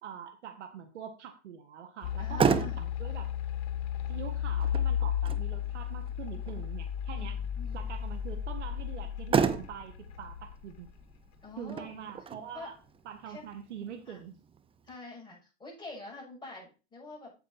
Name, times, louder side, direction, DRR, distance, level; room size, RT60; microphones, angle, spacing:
voice 1, 0.0-2.5 3.0-3.3 4.1-7.3 7.7-10.9 11.6-12.7 13.0-14.4, right 8 dB, 90° right, 6 dB, 1.5 m, -44 dB
sound 1, 2.0-11.1, left 9 dB, 50° left, 1.9 m, -34 dB
Motor vehicle (road), 2.0-15.0, right 6 dB, 15° right, 0.6 m, -35 dB
voice 2, 2.2-2.9 7.2-7.9 11.4-11.9 12.5-12.7 13.2-13.5 14.1-14.2 14.9-17.3, left 3 dB, 15° left, -3 dB, 6.5 m, -46 dB
9.0 x 7.8 x 4.2 m, 0.33 s
hypercardioid pair, 110°, 34 cm